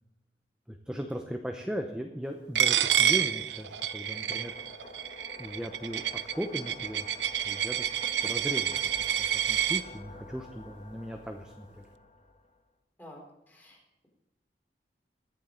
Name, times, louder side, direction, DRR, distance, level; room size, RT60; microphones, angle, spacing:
voice 1, 0.7-4.5 5.4-6.0 6.3-7.1 7.4-11.8, equal, 5° right, 4 dB, 0.7 m, -38 dB
sound 1, 1.9-12.6, left 2 dB, 40° left, 1.4 m, -49 dB
Coin (dropping), 2.6-9.8, right 10 dB, 80° right, 0.6 m, -28 dB
voice 2, 13.5-14.1, left 1 dB, 10° left, -1 dB, 3.6 m, -51 dB
21.5 x 7.5 x 3.8 m, 0.97 s
head